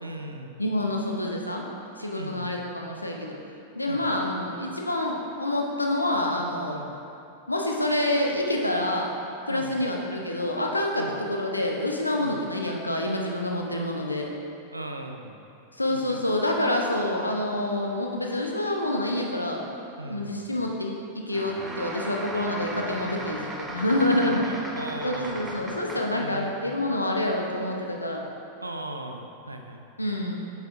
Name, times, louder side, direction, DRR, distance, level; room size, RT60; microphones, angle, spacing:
voice 1, 0.0-0.6 2.1-2.6 3.9-4.2 6.7-6.9 9.5-9.7 11.0-11.2 12.2-12.4 14.7-15.4 15.9-16.2 20.0-20.5 24.2-25.5 26.1-26.6 28.6-29.8, right 1 dB, 85° right, 4 dB, 0.5 m, -38 dB
voice 2, 0.6-1.6 2.0-3.4 3.7-6.8 7.5-9.1 9.5-14.3 15.8-19.6 20.1-20.9 21.3-24.4 25.0-28.2 30.0-30.4, left 1 dB, 85° left, 0 dB, 0.8 m, -27 dB
sound 1, 21.3-26.3, right 1 dB, 15° right, 0.7 m, -37 dB
8.2 x 7.0 x 2.6 m, 2.7 s
figure-of-eight pair, 90°, 0 cm